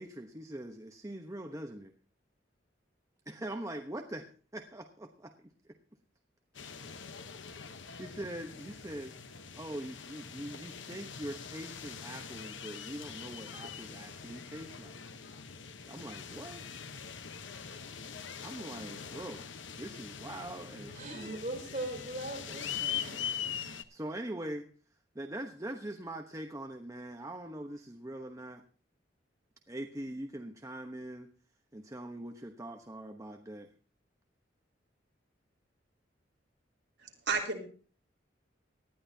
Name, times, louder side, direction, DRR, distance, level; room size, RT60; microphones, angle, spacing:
voice 1, 0.0-1.9 3.3-4.3 4.5-5.5 8.0-9.1 9.5-15.0 15.9-16.7 18.4-19.5 19.8-21.4 23.9-24.7 25.1-28.6 29.7-31.3 31.7-33.7, right 1 dB, 15° right, 3 dB, 1.0 m, -42 dB
sound 1, 6.5-23.8, left 7 dB, 85° left, 1.0 m, -43 dB
voice 2, 20.9-23.7, right 1 dB, 40° right, 2 dB, 3.6 m, -40 dB
voice 3, 37.0-37.6, right 4 dB, 65° right, 1 dB, 3.3 m, -32 dB
19.0 x 12.5 x 2.8 m, 0.40 s
head